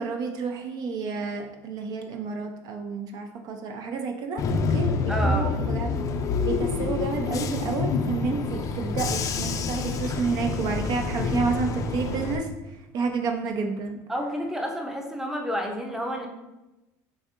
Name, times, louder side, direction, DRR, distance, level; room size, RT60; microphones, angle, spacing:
voice 1, 0.0-4.4 4.7-6.0 6.4-14.0, right 4 dB, 55° right, 4 dB, 0.5 m, -30 dB
Bus / Engine, 4.4-12.4, left 4 dB, 45° left, 0.4 m, -27 dB
voice 2, 5.1-5.6 14.1-16.3, equal, 5° right, 2 dB, 0.6 m, -30 dB
6.3 x 2.6 x 2.5 m, 1.0 s
supercardioid pair, 105°, 8 cm